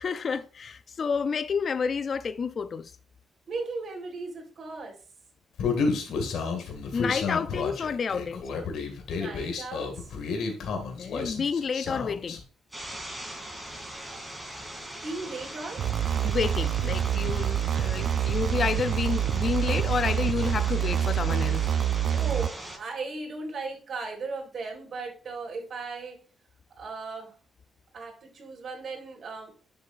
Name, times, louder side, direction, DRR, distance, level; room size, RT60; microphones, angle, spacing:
voice 1, 0.0-2.9 5.9-6.3 6.9-8.4 11.0-12.4 16.2-21.7, left 5 dB, 45° left, 0.4 m, -30 dB
voice 2, 3.5-4.9 9.1-10.1 14.1-14.4 14.9-15.8 22.1-26.2 26.8-27.3 27.9-29.5, right 3 dB, 50° right, 3.9 m, -37 dB
Human voice, 5.6-12.4, left 4 dB, 75° left, 2.0 m, -31 dB
sound 1, 12.7-22.8, right 1 dB, 5° right, 2.8 m, -41 dB
sound 2, 15.8-22.5, right 10 dB, 65° right, 0.3 m, -26 dB
10.5 x 6.9 x 2.5 m
cardioid pair, 120°, 0 cm